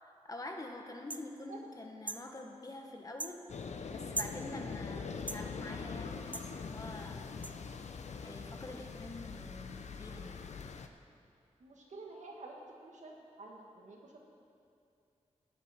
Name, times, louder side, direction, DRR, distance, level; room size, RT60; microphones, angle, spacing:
voice 1, 0.0-3.4 3.9-7.3 8.2-10.5, left 2 dB, 30° left, 2 dB, 1.2 m, -46 dB
sound 1, 1.1-1.3 2.1-2.2 3.2-3.4 4.1-4.4 5.3-5.4 6.3-6.5 7.4-7.5, right 2 dB, 10° right, 0.4 m, -38 dB
sound 2, 3.5-10.9, left 5 dB, 70° left, 0.6 m, -43 dB
voice 2, 11.6-14.3, right 2 dB, 85° right, 0 dB, 1.8 m, -50 dB
15.5 x 10.5 x 4.3 m, 2.5 s
wide cardioid pair, 120°, 12 cm